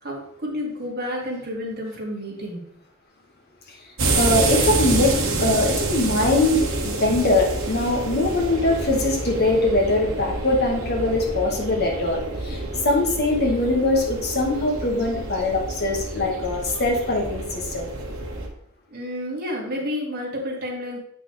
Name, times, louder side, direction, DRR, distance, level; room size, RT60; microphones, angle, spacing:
voice 1, 0.0-2.7 18.9-21.0, left 1 dB, 50° right, -2 dB, 2.2 m, -30 dB
sound 1, 4.0-18.5, right 2 dB, 80° right, 1.4 m, -27 dB
voice 2, 4.1-17.9, left 2 dB, 50° left, 0 dB, 1.7 m, -22 dB
8.2 x 6.0 x 3.3 m, 0.70 s
head